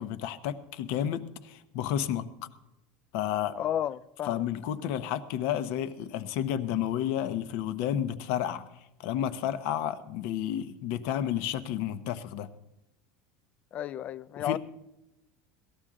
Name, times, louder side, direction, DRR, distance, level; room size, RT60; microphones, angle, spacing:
voice 1, 0.0-2.3 3.1-3.6 4.3-8.6 9.0-12.5 14.4-14.6, left 10 dB, 65° left, 0.8 m, -31 dB
voice 2, 3.6-4.4 13.7-14.6, left 11 dB, 35° left, 0.4 m, -32 dB
18.0 x 13.0 x 3.7 m
supercardioid pair, 145°, 4 cm